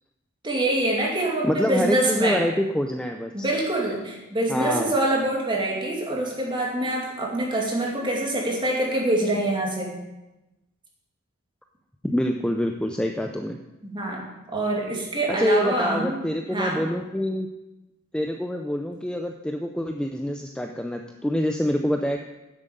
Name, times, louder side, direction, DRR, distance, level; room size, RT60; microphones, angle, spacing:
voice 1, 0.4-2.4 3.3-10.0 13.8-14.2 14.5-16.2 16.5-16.8, right 1 dB, 20° right, -2 dB, 2.5 m, -25 dB
voice 2, 1.4-3.5 4.5-4.9 12.0-13.6 15.3-17.5 18.1-22.3, equal, 5° left, 4 dB, 0.5 m, -26 dB
10.0 x 7.6 x 6.7 m, 1.0 s
head